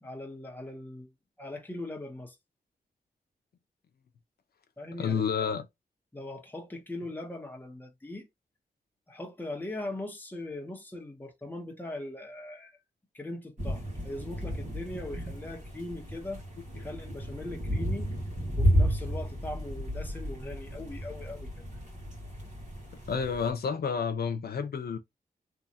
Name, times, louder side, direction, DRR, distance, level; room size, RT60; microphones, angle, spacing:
voice 1, 0.0-1.1 1.4-2.4 4.8-5.5 6.1-8.3 9.1-12.8 13.1-16.4 16.7-18.1 18.6-21.8, left 2 dB, 10° left, 1.0 m, -40 dB
voice 2, 5.0-5.6 23.1-25.0, left 6 dB, 80° left, 0.7 m, -30 dB
sound 1, 13.6-23.5, equal, 50° right, 1.7 m, -32 dB
3.5 x 3.2 x 2.8 m
wide cardioid pair, 140°, 16 cm